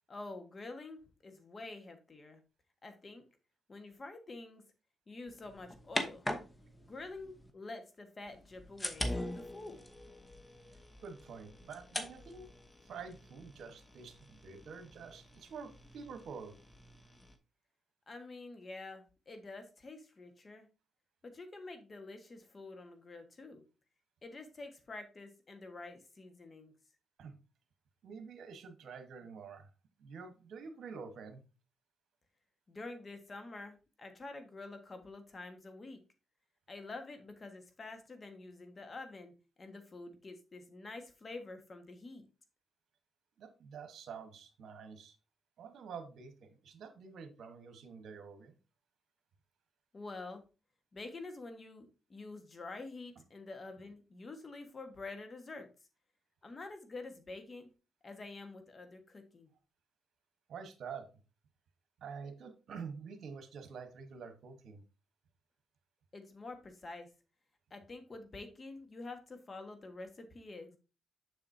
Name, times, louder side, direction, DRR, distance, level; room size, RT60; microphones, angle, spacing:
voice 1, 0.1-2.4 2.8-3.2 3.7-4.6 5.1-6.3 6.8-9.8 18.1-20.7 21.2-23.6 24.2-26.7 32.7-36.0 36.7-42.2 49.9-50.4 50.9-55.7 56.4-57.7 58.0-59.5 66.1-67.1 67.7-70.8, left 3 dB, 35° left, 7 dB, 1.5 m, -48 dB
sound 1, 5.3-7.5 8.3-17.4, left 1 dB, 20° left, 1.0 m, -43 dB
voice 2, 11.0-12.5 12.8-16.6 27.2-27.4 28.0-29.7 30.0-31.4 43.4-45.2 45.6-48.6 60.5-61.1 62.0-64.8, right 5 dB, 75° right, 8 dB, 1.2 m, -48 dB
7.0 x 6.6 x 2.7 m, 0.31 s
cardioid pair, 80°, 0 cm